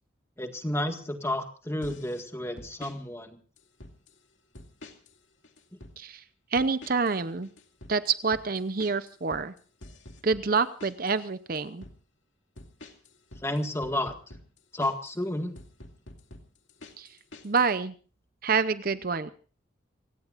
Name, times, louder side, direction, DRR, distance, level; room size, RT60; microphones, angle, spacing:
voice 1, 0.4-3.4 13.4-14.2 14.7-15.5, left 1 dB, 15° left, 5 dB, 1.8 m, -31 dB
sound 1, 1.8-2.2 2.6-3.0 3.6-4.2 4.5-5.2 5.4-6.0 6.6-7.2 7.4-11.2 11.6-12.0 12.6-15.2 15.6-17.7, left 1 dB, 70° left, 2.4 m, -48 dB
voice 2, 6.5-7.5 7.9-9.5 10.2-11.8 17.0-17.1 17.4-17.9 18.4-19.3, right 4 dB, 45° right, 13 dB, 0.7 m, -27 dB
28.5 x 17.0 x 2.6 m, 0.38 s
head